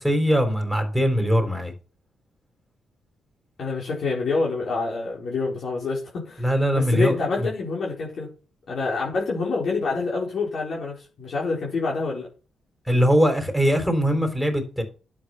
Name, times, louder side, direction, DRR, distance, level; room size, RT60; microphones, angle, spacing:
voice 1, 0.0-1.7 6.4-7.5 12.9-14.8, equal, ahead, 3.9 m, -21 dB
voice 2, 3.6-6.5 6.7-8.3 8.7-12.3, left 4 dB, 60° left, 4.6 m, -27 dB
11.0 x 8.6 x 5.7 m
cardioid pair, 100°, 0 cm